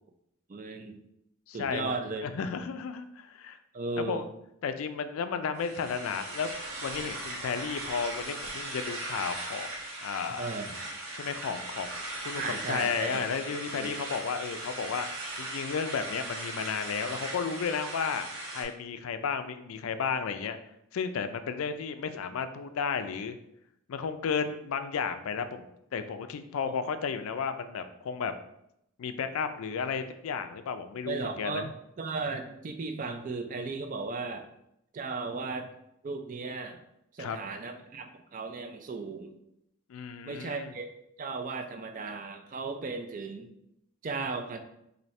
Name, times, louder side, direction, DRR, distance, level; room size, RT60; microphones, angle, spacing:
voice 1, 0.5-1.0 1.5-2.2 3.7-4.2 10.4-10.7 12.3-13.2 13.8-14.0 26.7-26.8 31.1-31.7 32.0-34.5 34.9-35.7 36.0-36.8 37.1-39.4 40.3-40.9 41.2-43.5 44.0-44.6, right 4 dB, 35° right, 6 dB, 0.3 m, -36 dB
voice 2, 1.5-3.6 4.0-4.3 4.6-6.5 6.8-9.7 10.0-10.6 11.2-11.9 12.2-15.1 15.4-20.6 20.9-23.4 23.9-25.7 25.9-28.3 29.0-31.7 37.2-37.4 39.9-40.7, left 6 dB, 75° left, 9 dB, 0.4 m, -33 dB
sound 1, 5.6-18.6, right 1 dB, 85° right, 1.3 m, -38 dB
4.2 x 2.7 x 3.1 m, 0.79 s
head